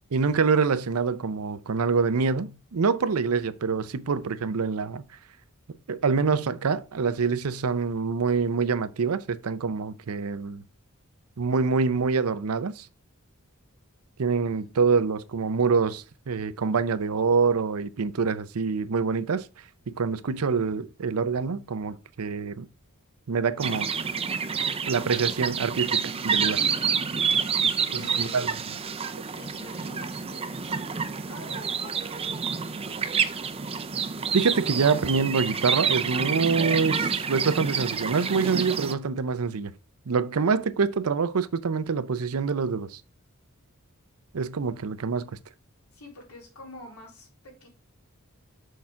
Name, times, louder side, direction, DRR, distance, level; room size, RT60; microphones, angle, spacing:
voice 1, 0.1-5.0 5.9-10.6 11.4-12.9 14.2-19.5 19.9-22.7 23.3-23.9 24.9-26.6 27.9-28.5 29.1-29.2 34.3-39.7 40.1-43.0 44.3-45.3, right 5 dB, 90° right, 0.6 m, -25 dB
sound 1, 23.6-38.9, right 6 dB, 25° right, 0.5 m, -28 dB
voice 2, 26.6-27.0 27.8-28.5 29.3-33.1 45.9-47.7, left 1 dB, 85° left, 3.7 m, -46 dB
6.4 x 5.8 x 3.7 m
head